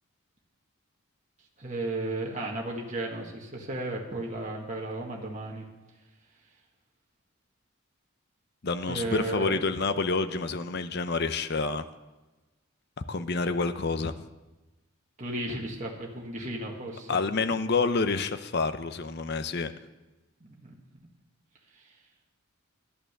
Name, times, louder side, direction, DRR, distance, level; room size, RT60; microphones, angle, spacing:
voice 1, 1.6-5.6 8.9-9.6 15.2-17.2 20.4-20.7, right 2 dB, 35° right, -1 dB, 1.6 m, -34 dB
voice 2, 8.6-11.8 13.1-14.1 17.1-19.7, left 4 dB, 50° left, 10 dB, 0.6 m, -28 dB
11.5 x 8.9 x 6.6 m, 1.1 s
head